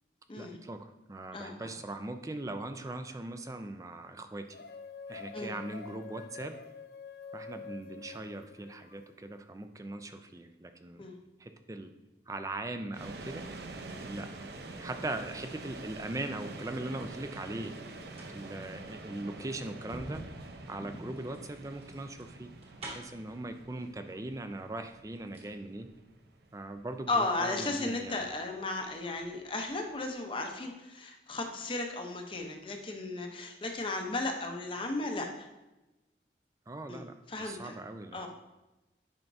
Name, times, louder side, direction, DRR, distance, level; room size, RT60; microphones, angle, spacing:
voice 1, 0.4-4.6 5.1-6.6 7.3-11.1 11.4-11.9 12.3-13.4 14.0-17.7 18.3-20.2 20.7-22.5 22.9-25.9 26.5-28.2 36.7-37.1 37.4-38.3, right 2 dB, 20° right, 8 dB, 0.4 m, -40 dB
voice 2, 1.3-1.7 5.3-5.5 11.0-11.2 21.0-21.1 27.1-35.5 36.9-37.0 37.3-37.7 38.1-38.3, left 2 dB, 30° left, 3 dB, 0.7 m, -35 dB
sound 1, 4.5-9.0, left 5 dB, 60° left, 0.4 m, -46 dB
sound 2, 12.9-29.9, right 2 dB, 70° right, 0.6 m, -47 dB
sound 3, 16.9-17.2 17.9-23.3 24.3-24.4 24.7-25.6 25.8-25.9, right 1 dB, 35° right, 1.4 m, -48 dB
9.0 x 5.8 x 2.7 m, 1.0 s
head